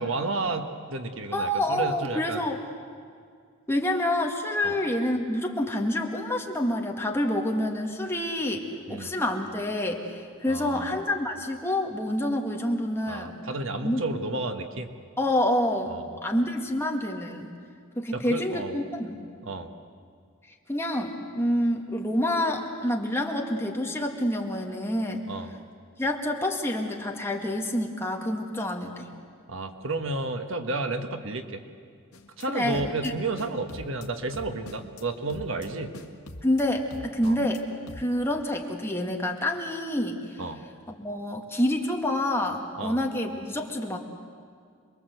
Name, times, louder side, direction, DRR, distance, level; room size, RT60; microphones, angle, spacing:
voice 1, 0.0-2.4 4.6-4.7 8.9-9.1 10.5-10.9 13.1-14.9 15.9-16.2 18.1-18.8 19.4-19.7 25.3-25.5 29.5-31.6 32.4-35.9 37.2-37.3 40.4-40.6 42.8-43.0, right 2 dB, 60° right, 6 dB, 1.5 m, -31 dB
voice 2, 1.3-2.6 3.7-13.4 13.8-14.0 15.2-15.9 16.2-17.5 18.0-19.2 20.7-25.3 26.0-29.1 32.5-33.1 36.4-37.6 38.0-40.4 41.0-44.0, left 1 dB, 10° left, 1 dB, 1.9 m, -27 dB
sound 1, 32.1-32.5 32.7-33.1 33.4-34.1 34.3-35.0 35.3-35.7 35.9-36.6 36.9-37.6 37.9-38.0, left 1 dB, 75° left, 1.9 m, -43 dB
27.5 x 22.0 x 8.0 m, 2.2 s
head